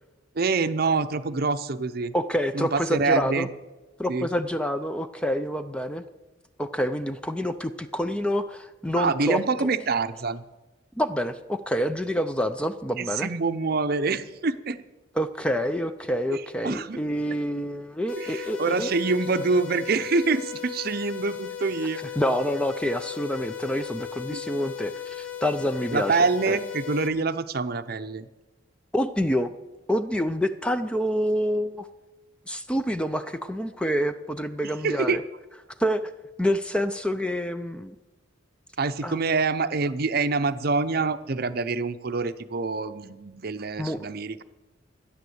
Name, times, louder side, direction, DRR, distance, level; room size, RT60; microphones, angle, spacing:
voice 1, 0.3-2.1 2.5-3.5 4.1-4.3 8.9-10.4 13.0-14.8 16.3-17.0 18.2-22.0 24.3-24.4 25.9-28.3 34.6-35.2 38.8-44.4, right 4 dB, 50° right, 11 dB, 0.6 m, -26 dB
voice 2, 2.1-3.5 4.0-6.0 6.6-9.4 11.0-13.3 15.2-18.9 22.2-26.2 26.5-26.6 28.9-29.5 29.9-31.9 32.5-35.2 35.8-36.1 36.4-38.0 39.0-39.2 43.8-44.0, equal, 5° left, 9 dB, 0.4 m, -27 dB
sound 1, 18.1-27.1, left 9 dB, 85° left, 1.4 m, -37 dB
13.5 x 10.0 x 7.9 m, 1.1 s
head